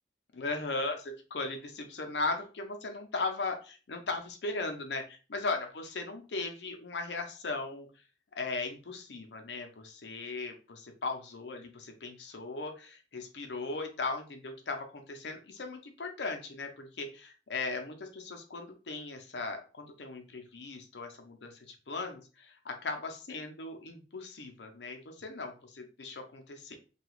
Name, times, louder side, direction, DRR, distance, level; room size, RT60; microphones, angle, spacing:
voice 1, 0.3-7.9 8.3-26.8, left 3 dB, 70° left, 4 dB, 0.6 m, -38 dB
2.8 x 2.3 x 3.1 m, 0.34 s
head